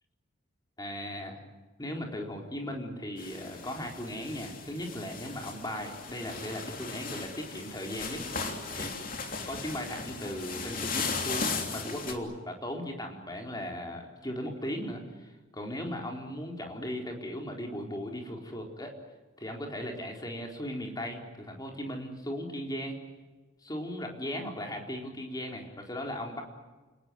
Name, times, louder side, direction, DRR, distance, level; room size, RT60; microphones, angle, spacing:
voice 1, 0.8-1.4 1.8-8.2 8.7-8.9 9.4-18.9 19.4-23.0 23.6-26.4, equal, 20° left, 2 dB, 4.2 m, -37 dB
sound 1, 3.2-12.1, left 4 dB, 40° left, 3.2 m, -37 dB
29.5 x 19.0 x 9.5 m, 1.3 s
head